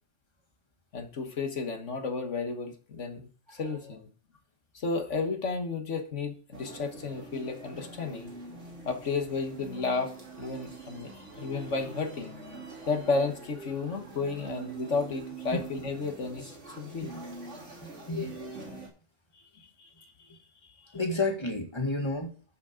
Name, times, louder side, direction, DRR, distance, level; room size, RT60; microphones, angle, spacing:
voice 1, 0.9-4.1 4.7-8.3 8.9-12.3 12.9-16.5 16.8-17.1 19.3-20.4 20.8-20.9, left 4 dB, 75° left, 6 dB, 1.8 m, -33 dB
sound 1, 6.5-18.9, right 3 dB, 75° right, 3.0 m, -44 dB
voice 2, 17.8-18.4 20.9-22.3, left 2 dB, 25° left, 3 dB, 1.8 m, -31 dB
11.0 x 6.1 x 5.1 m, 0.39 s
omnidirectional pair, 1.2 m